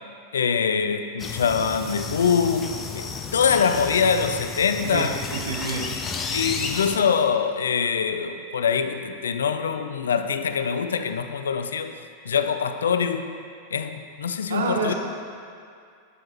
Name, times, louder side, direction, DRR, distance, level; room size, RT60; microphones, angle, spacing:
voice 1, 0.3-5.2 6.3-12.0 12.2-13.3 13.7-14.9, left 6 dB, 65° left, 9 dB, 0.4 m, -24 dB
sound 1, 1.2-7.0, left 5 dB, 20° left, 0.6 m, -32 dB
voice 2, 4.8-5.9 14.5-14.9, right 3 dB, 65° right, 1 dB, 1.0 m, -28 dB
8.9 x 8.1 x 3.0 m, 2.3 s
figure-of-eight pair, 90°, 0 cm